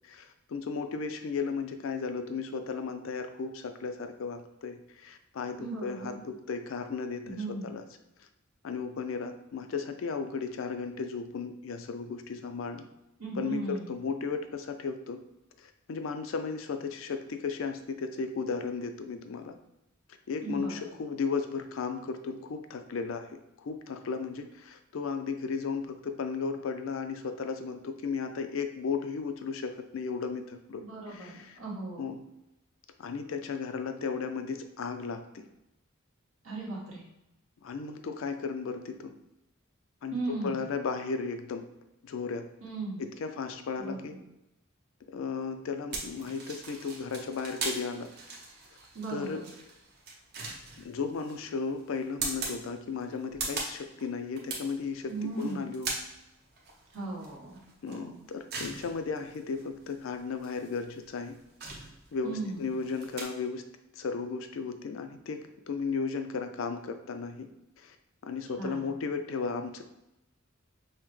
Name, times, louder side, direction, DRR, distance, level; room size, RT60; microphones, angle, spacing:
voice 1, 0.1-7.4 7.6-7.8 8.6-12.9 13.4-15.2 15.6-19.6 20.3-30.8 31.1-31.6 32.0-32.2 33.0-35.5 37.6-39.1 40.0-41.7 42.0-42.5 43.0-44.2 45.1-48.1 49.1-49.4 50.8-55.9 57.8-61.4 62.1-63.6 63.9-67.5 67.8-68.0 68.2-69.8, left 5 dB, 70° left, 7 dB, 0.4 m, -35 dB
voice 2, 5.6-6.1 7.3-7.7 13.2-13.9 20.4-21.0 30.7-32.1 36.4-37.0 40.1-40.7 42.6-43.0 43.8-44.2 48.9-49.4 55.1-55.7 56.9-57.6 57.9-58.2 62.2-62.7 68.6-68.9, right 2 dB, 80° right, -5 dB, 1.3 m, -37 dB
sound 1, 45.9-63.2, right 3 dB, 50° right, 0.8 m, -41 dB
5.5 x 2.1 x 3.1 m, 0.88 s
head